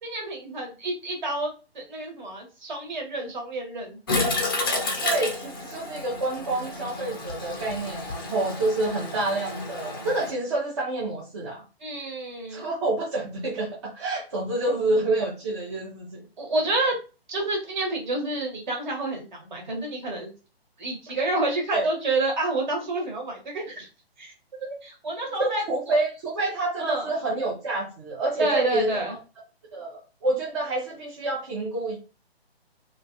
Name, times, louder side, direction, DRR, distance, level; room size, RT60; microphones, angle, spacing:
voice 1, 0.0-4.0 11.8-12.6 16.4-16.9 17.3-20.3 20.8-23.9 24.2-24.3 24.6-26.0 26.8-27.1 28.4-29.1, right 2 dB, 45° right, 1 dB, 1.2 m, -29 dB
Toilet flush, 4.1-10.3, left 2 dB, 20° left, 0.4 m, -31 dB
voice 2, 5.0-11.6 12.5-16.2 21.7-21.9 25.4-29.2 29.7-32.0, right 2 dB, 30° right, -4 dB, 0.6 m, -28 dB
3.0 x 2.3 x 2.5 m, 0.33 s
figure-of-eight pair, 135°, 31 cm